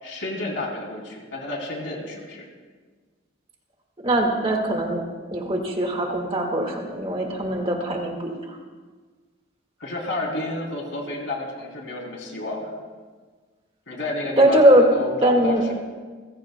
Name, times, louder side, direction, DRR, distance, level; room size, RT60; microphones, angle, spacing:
voice 1, 0.0-2.5 9.8-12.8 13.9-15.5, left 2 dB, 65° left, -1 dB, 3.4 m, -31 dB
voice 2, 4.0-5.0 5.3-8.6 14.4-14.8 15.2-15.7, right 1 dB, 30° right, 1 dB, 1.9 m, -21 dB
29.0 x 16.0 x 2.3 m, 1.4 s
head